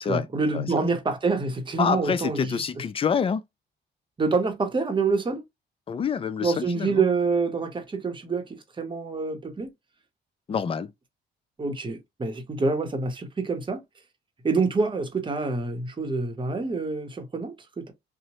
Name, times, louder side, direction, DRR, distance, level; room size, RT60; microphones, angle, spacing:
voice 1, 0.1-2.6 4.2-5.4 6.4-9.7 11.6-13.8 14.4-17.9, right 4 dB, 25° right, 0.8 m, -26 dB
voice 2, 1.8-3.4 5.9-7.0 10.5-10.9, left 6 dB, 30° left, 0.4 m, -27 dB
2.9 x 2.0 x 2.8 m
cardioid pair, 90°, 20 cm